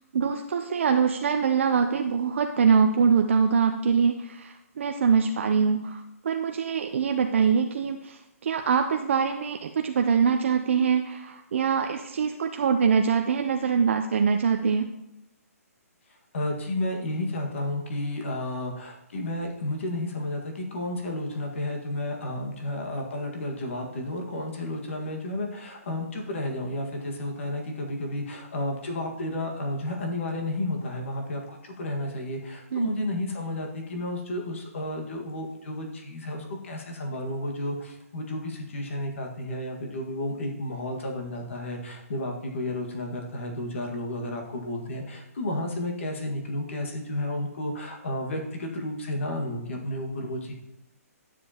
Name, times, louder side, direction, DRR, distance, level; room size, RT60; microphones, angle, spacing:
voice 1, 0.1-14.9 32.7-32.9, right 6 dB, 50° right, 5 dB, 0.5 m, -24 dB
voice 2, 16.3-50.5, left 1 dB, 50° left, 1 dB, 1.6 m, -32 dB
11.5 x 7.4 x 2.9 m, 0.88 s
hypercardioid pair, 170°, 8 cm